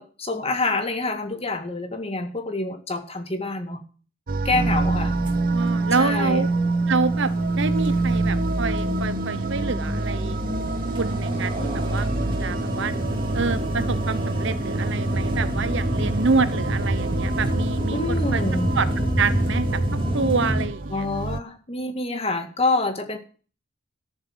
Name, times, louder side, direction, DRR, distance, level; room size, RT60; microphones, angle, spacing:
voice 1, 0.0-3.8 4.4-5.2 6.0-6.4 11.5-12.1 17.9-18.7 20.9-23.2, left 2 dB, 30° left, 6 dB, 2.0 m, -27 dB
sound 1, 4.3-21.4, right 2 dB, 45° right, 0.6 m, -30 dB
sound 2, 4.5-20.7, right 1 dB, 25° right, 3.0 m, -26 dB
voice 2, 4.6-5.1 5.5-6.5 6.9-10.4 11.0-12.9 13.3-18.4 18.8-18.9 19.2-19.7 20.1-21.1, right 4 dB, 60° right, 14 dB, 1.0 m, -27 dB
13.5 x 7.3 x 7.9 m, 0.39 s
head